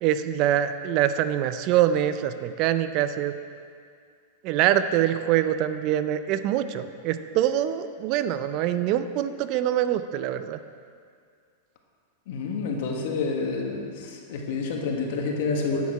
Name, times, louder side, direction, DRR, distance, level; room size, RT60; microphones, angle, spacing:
voice 1, 0.0-3.3 4.4-10.6, right 11 dB, 45° right, 11 dB, 0.4 m, -24 dB
voice 2, 12.3-13.9 14.3-15.9, left 4 dB, 65° left, 1 dB, 1.3 m, -28 dB
8.3 x 6.4 x 4.7 m, 2.1 s
hypercardioid pair, 125°, 0 cm